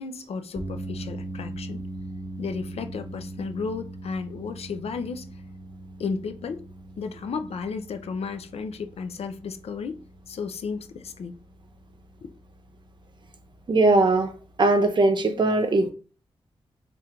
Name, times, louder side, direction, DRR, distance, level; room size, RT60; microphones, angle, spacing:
voice 1, 0.0-1.8 2.4-5.3 6.0-6.6 7.0-10.0 10.3-11.4, left 5 dB, 80° left, 0.5 m, -33 dB
sound 1, 0.5-14.8, right 1 dB, 10° right, 0.7 m, -41 dB
voice 2, 13.7-14.3 14.6-15.9, right 2 dB, 50° right, 0.6 m, -20 dB
3.6 x 2.5 x 4.3 m
wide cardioid pair, 100°, 10 cm